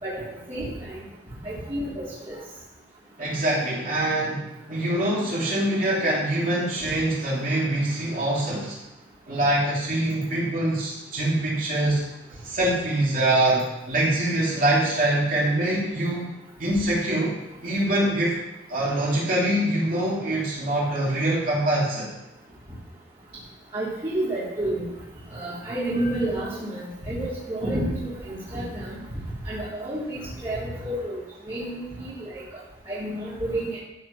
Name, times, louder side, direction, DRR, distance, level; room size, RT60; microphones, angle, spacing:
voice 1, 0.5-1.0 1.4-2.4 23.7-24.9 25.3-28.9 29.4-31.2 31.5-32.4 32.9-33.8, right 1 dB, 25° right, -12 dB, 3.6 m, -30 dB
voice 2, 3.2-8.8 9.3-12.0 12.4-16.3 16.6-18.4 18.7-22.1, right 1 dB, 45° right, -6 dB, 3.0 m, -24 dB
14.5 x 5.1 x 6.0 m, 0.95 s
head